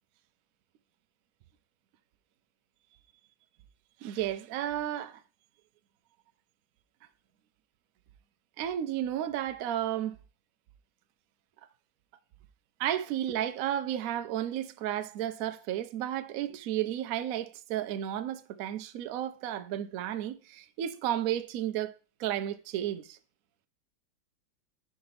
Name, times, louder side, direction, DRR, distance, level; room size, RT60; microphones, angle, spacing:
voice 1, 4.0-5.2 8.6-10.2 12.8-23.2, right 11 dB, 80° right, 0.7 m, -33 dB
4.8 x 4.8 x 5.5 m
omnidirectional pair, 2.1 m